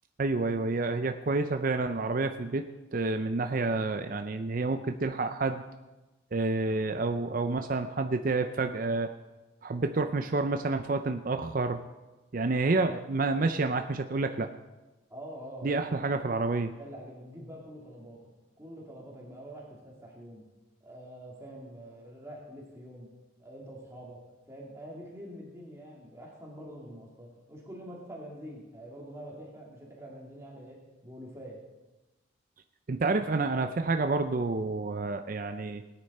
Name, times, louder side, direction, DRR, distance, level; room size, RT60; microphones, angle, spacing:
voice 1, 0.2-2.6 2.9-5.6 6.3-9.1 9.6-11.8 12.3-14.5 15.6-16.7 32.9-35.8, right 3 dB, 45° right, 6 dB, 0.5 m, -29 dB
voice 2, 15.1-16.0 16.8-18.3 18.6-20.4 20.8-23.1 23.4-24.2 24.5-31.6, equal, 15° right, -3 dB, 2.4 m, -45 dB
17.5 x 9.9 x 4.2 m, 1.1 s
head